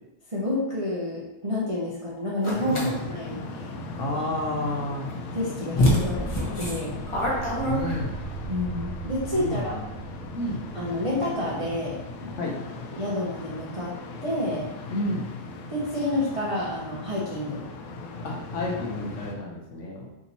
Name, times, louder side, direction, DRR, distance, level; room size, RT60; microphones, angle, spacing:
voice 1, 0.3-3.7 5.3-7.0 8.5-9.8 10.7-12.0 12.9-13.9 14.2-14.7 15.7-17.6, left 1 dB, 40° right, -7 dB, 0.4 m, -29 dB
sound 1, 2.4-2.9 5.1-5.2 5.8-8.3, equal, 30° left, 0.6 m, -26 dB
sound 2, 2.5-19.3, left 3 dB, 85° left, 1.1 m, -38 dB
voice 2, 4.0-5.1 5.7-6.6 7.6-8.2 9.3-9.9 10.3-10.6 12.4-12.6 14.9-15.3 18.2-20.1, left 1 dB, 60° left, -2 dB, 1.0 m, -31 dB
sound 3, 6.7-11.9, right 4 dB, 75° right, 1.2 m, -39 dB
3.5 x 2.8 x 4.1 m, 0.94 s
omnidirectional pair, 1.6 m